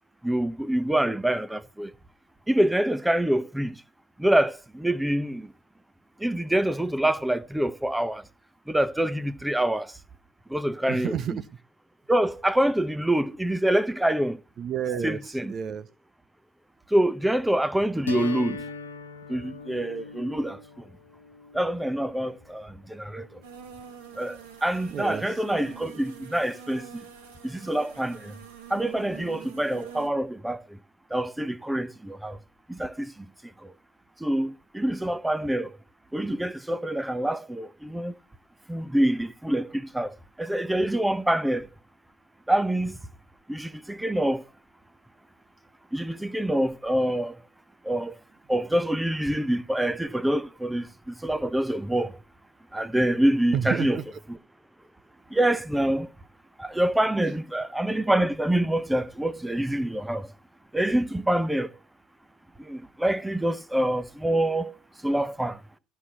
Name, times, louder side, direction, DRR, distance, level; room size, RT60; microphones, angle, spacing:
voice 1, 0.2-1.9 2.5-3.8 4.2-5.5 6.2-8.2 8.7-9.9 10.5-11.1 12.1-14.4 15.0-15.4 16.9-18.6 19.3-20.6 21.5-23.3 24.2-24.4 24.6-27.0 27.4-28.3 28.7-30.6 31.1-32.4 32.7-33.1 34.2-35.7 36.1-38.1 38.7-40.1 40.4-41.7 42.5-43.0 43.5-44.4 45.9-47.3 47.8-48.1 48.5-52.2 52.7-54.0 55.3-56.1 56.6-60.3 60.7-61.7 62.6-64.7 65.0-65.6, right 1 dB, 5° right, 0.9 m, -26 dB
voice 2, 10.9-11.5 14.6-15.9 24.9-25.4 53.5-54.0, right 8 dB, 40° right, 0.7 m, -30 dB
sound 1, 18.1-24.0, left 3 dB, 80° left, 1.1 m, -40 dB
sound 2, 23.4-30.1, right 8 dB, 70° right, 2.4 m, -46 dB
12.5 x 4.6 x 7.5 m
figure-of-eight pair, 65°, 0 cm